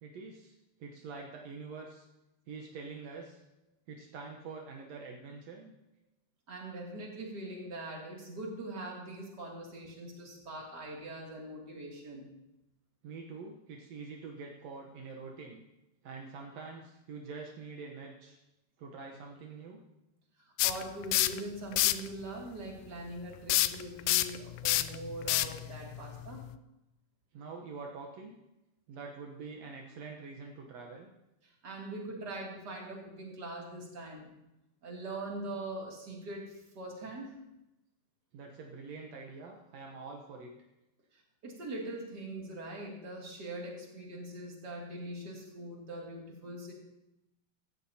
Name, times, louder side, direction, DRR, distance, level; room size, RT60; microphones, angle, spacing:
voice 1, 0.0-2.1 2.5-3.4 3.9-5.7 13.0-15.6 16.0-18.4 18.8-19.8 27.3-28.3 28.9-31.1 38.3-40.5, right 4 dB, 75° right, 0 dB, 1.6 m, -45 dB
voice 2, 6.5-12.3 20.4-26.4 31.6-34.3 34.8-37.3 41.4-46.7, right 1 dB, 30° right, -2 dB, 2.6 m, -42 dB
sound 1, 20.6-21.4 21.7-22.1 23.5-26.5, left 16 dB, 80° left, 2.2 m, -28 dB
16.0 x 14.5 x 2.8 m, 0.91 s
omnidirectional pair, 4.4 m